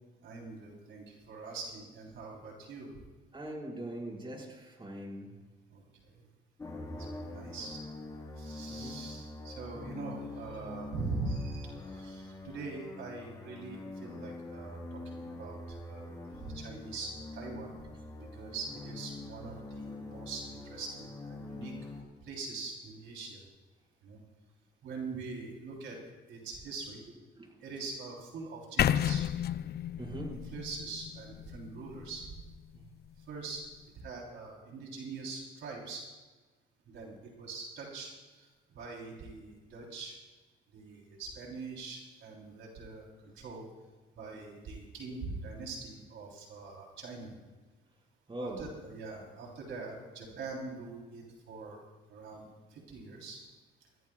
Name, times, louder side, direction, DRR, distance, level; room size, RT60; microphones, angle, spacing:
voice 1, 0.2-2.9 5.7-5.8 7.1-7.8 8.4-15.6 15.9-17.8 18.2-21.7 22.2-23.4 24.0-24.2 24.8-26.0 26.3-27.0 27.6-29.3 30.0-32.2 33.3-33.6 34.0-36.0 36.9-38.5 38.8-40.2 40.7-43.7 44.2-47.3 48.4-51.8 52.1-53.4, right 3 dB, 75° right, -2 dB, 3.5 m, -43 dB
voice 2, 3.3-5.3 8.7-9.0 27.4-27.5 30.0-30.3 48.3-48.7, right 1 dB, 25° right, -2 dB, 5.1 m, -41 dB
sound 1, 6.6-22.0, left 2 dB, 15° left, 3.7 m, -44 dB
sound 2, 28.8-32.8, left 10 dB, 55° left, 0.5 m, -32 dB
25.5 x 14.0 x 2.4 m, 1.2 s
cardioid pair, 90°, 20 cm